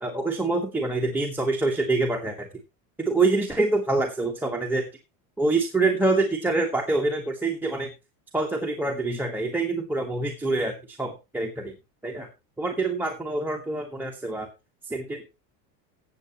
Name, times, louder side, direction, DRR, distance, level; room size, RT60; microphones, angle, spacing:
voice 1, 0.0-2.5 3.0-4.9 5.4-7.9 8.3-11.7 12.0-12.3 12.6-14.5 14.8-15.2, right 3 dB, 5° right, 0 dB, 1.3 m, -26 dB
15.5 x 8.4 x 2.9 m, 0.26 s
supercardioid pair, 135°, 45 cm